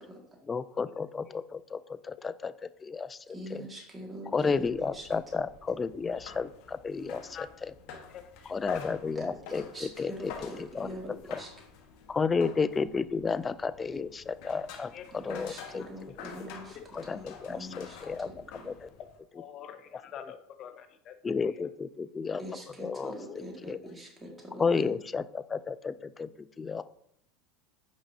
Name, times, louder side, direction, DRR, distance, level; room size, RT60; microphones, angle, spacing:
voice 1, 0.5-3.7 4.3-7.7 8.5-11.4 12.1-14.9 15.2-15.8 16.9-18.9 21.2-22.4 22.8-23.1 23.6-23.8 24.6-26.3 26.6-26.8, left 5 dB, 20° left, 15 dB, 0.4 m, -32 dB
voice 2, 3.3-4.6 4.9-5.0 9.2-9.3 9.7-11.1 11.4-11.5 15.3-16.8 17.1-18.0 22.4-24.9, equal, 15° right, -1 dB, 2.0 m, -43 dB
sound 1, 4.3-19.2, left 6 dB, 65° left, 1.4 m, -49 dB
voice 3, 8.1-8.5 8.8-8.9 12.6-12.7 14.9-15.0 15.6-16.2 16.7-16.9 19.3-21.1 21.4-21.6 23.3-23.4 23.8-23.9, left 9 dB, 45° left, 8 dB, 1.0 m, -46 dB
9.0 x 5.2 x 2.8 m, 0.70 s
supercardioid pair, 110°, 0 cm